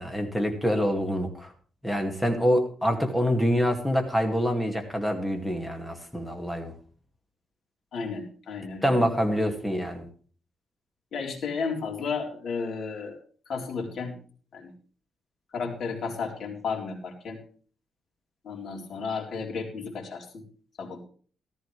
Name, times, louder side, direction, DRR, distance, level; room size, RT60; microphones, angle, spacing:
voice 1, 0.0-1.5 1.8-6.7 8.8-10.1, equal, 5° left, 4 dB, 2.2 m, -26 dB
voice 2, 7.9-9.0 11.1-13.2 13.5-14.2 14.5-14.7 15.5-17.4 18.4-20.4 20.8-21.0, left 5 dB, 60° left, 1 dB, 3.8 m, -33 dB
14.5 x 13.5 x 3.3 m, 0.42 s
cardioid pair, 120°, 0 cm